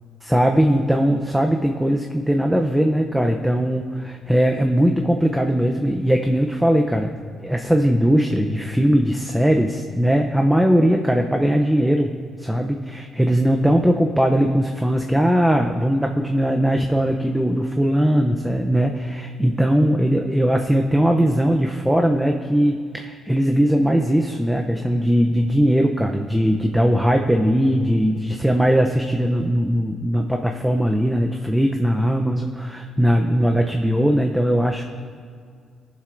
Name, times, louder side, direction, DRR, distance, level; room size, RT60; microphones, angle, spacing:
voice 1, 0.2-7.1 7.4-12.1 12.4-34.8, equal, 5° right, 3 dB, 0.6 m, -19 dB
17.5 x 7.5 x 2.6 m, 2.1 s
cardioid pair, 90°, 0 cm